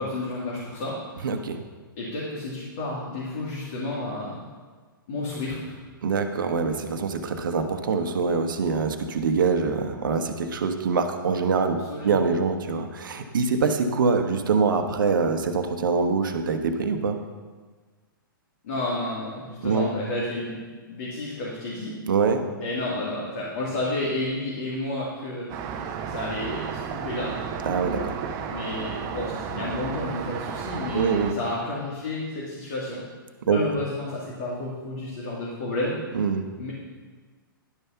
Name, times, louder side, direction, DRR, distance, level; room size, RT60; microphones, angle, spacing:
voice 1, 0.0-1.2 2.0-4.4 5.1-5.7 11.9-12.2 18.6-20.6 20.9-22.0 22.6-25.5 26.0-27.3 28.5-33.0 33.5-35.9 36.6-36.7, left 2 dB, 55° left, -6 dB, 2.4 m, -31 dB
voice 2, 1.2-1.6 6.0-17.2 19.6-19.9 22.1-22.4 27.7-28.2 30.9-31.3 33.4-33.6 36.1-36.4, right 5 dB, 65° right, 7 dB, 1.0 m, -24 dB
Traffic noise roadway noise, 25.5-31.3, right 7 dB, 30° right, 0.8 m, -33 dB
11.0 x 5.5 x 5.7 m, 1.4 s
figure-of-eight pair, 120°, 12 cm